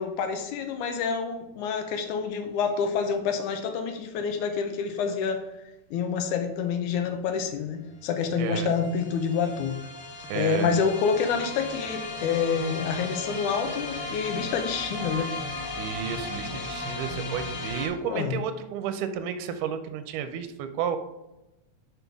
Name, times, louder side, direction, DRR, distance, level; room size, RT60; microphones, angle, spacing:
voice 1, 0.0-5.4 5.9-9.8 10.3-15.3 18.0-18.4, left 6 dB, 75° left, 6 dB, 2.1 m, -28 dB
sound 1, 7.7-7.8 7.9-17.9, left 2 dB, 55° left, 1.6 m, -36 dB
voice 2, 8.4-8.7 10.3-10.7 15.8-21.0, right 8 dB, 80° right, 9 dB, 2.1 m, -32 dB
5.9 x 5.4 x 3.5 m, 0.95 s
omnidirectional pair, 3.8 m